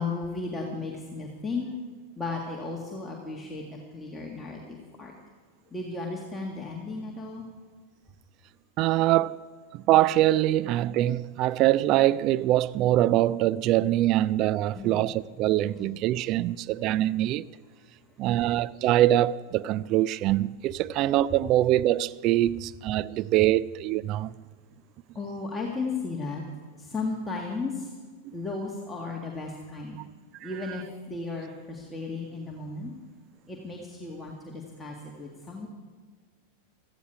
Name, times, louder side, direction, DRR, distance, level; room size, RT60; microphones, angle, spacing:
voice 1, 0.0-1.7 2.2-5.1 5.7-7.5 14.7-15.1 15.8-15.9 18.3-18.4 25.2-26.4 26.8-27.9 28.3-30.0 30.4-32.9 33.5-35.7, left 3 dB, 10° left, 1.9 m, -35 dB
voice 2, 8.8-9.4 9.7-17.5 18.2-24.3, right 14 dB, 40° right, 0.4 m, -23 dB
16.5 x 14.0 x 4.7 m
figure-of-eight pair, 90°, 0 cm